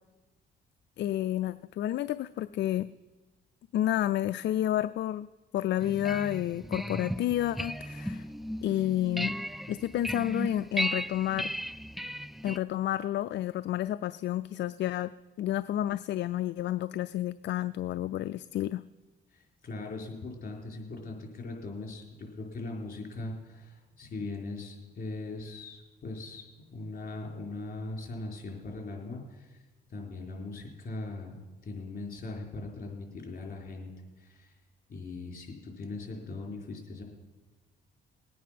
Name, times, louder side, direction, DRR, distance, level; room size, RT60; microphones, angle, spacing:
voice 1, 1.0-2.9 3.7-5.3 5.5-8.3 8.6-9.3 9.7-11.5 12.4-18.8, left 13 dB, 65° left, 13 dB, 0.4 m, -30 dB
sound 1, 5.8-12.6, equal, ahead, 0.4 m, -36 dB
voice 2, 19.3-26.4 26.7-29.6 29.9-33.9 34.2-34.5 34.9-37.0, left 2 dB, 45° left, 0 dB, 4.4 m, -40 dB
20.0 x 9.4 x 5.9 m, 1.2 s
cardioid pair, 90°, 20 cm